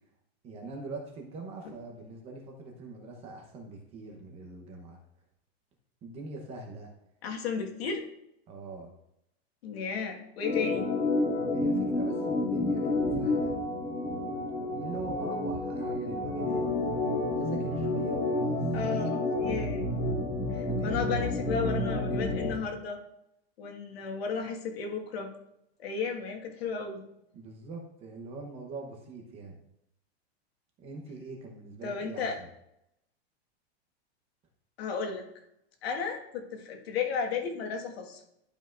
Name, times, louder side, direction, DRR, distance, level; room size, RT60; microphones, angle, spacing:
voice 1, 0.4-5.0 6.0-6.9 8.5-8.9 11.5-13.5 14.7-16.9 17.3-18.6 20.7-21.4 27.3-29.6 30.8-32.5, right 3 dB, 20° right, 1 dB, 0.9 m, -43 dB
voice 2, 7.2-8.0 9.6-10.9 18.7-19.9 20.5-23.0 23.6-25.3 25.8-27.0 31.8-32.4 34.8-35.3 35.8-38.2, left 5 dB, 70° left, 2 dB, 1.8 m, -34 dB
Organ, 10.4-22.6, left 2 dB, 85° left, 2.8 m, -30 dB
12.0 x 5.5 x 2.5 m, 0.80 s
supercardioid pair, 175°, 32 cm